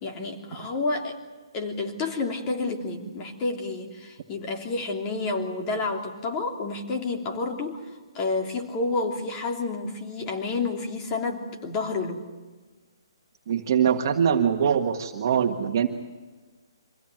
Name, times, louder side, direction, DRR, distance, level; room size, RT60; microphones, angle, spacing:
voice 1, 0.0-1.2 1.5-7.8 8.1-12.2, left 3 dB, 25° left, 3 dB, 3.1 m, -29 dB
voice 2, 13.5-15.9, right 8 dB, 45° right, 3 dB, 1.7 m, -23 dB
25.0 x 16.5 x 9.1 m, 1.3 s
hypercardioid pair, 160°, 3 cm